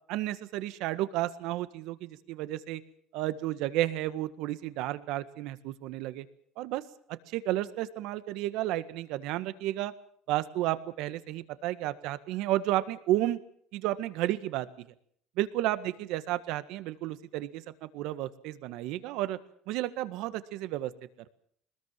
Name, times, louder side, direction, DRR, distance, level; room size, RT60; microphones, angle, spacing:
voice 1, 0.1-2.8 3.1-6.2 6.6-6.8 7.3-9.9 10.3-13.4 13.7-14.7 15.4-19.4 19.7-20.9, right 15 dB, 75° right, 13 dB, 1.7 m, -32 dB
22.0 x 20.5 x 7.6 m, 0.64 s
supercardioid pair, 105°, 0 cm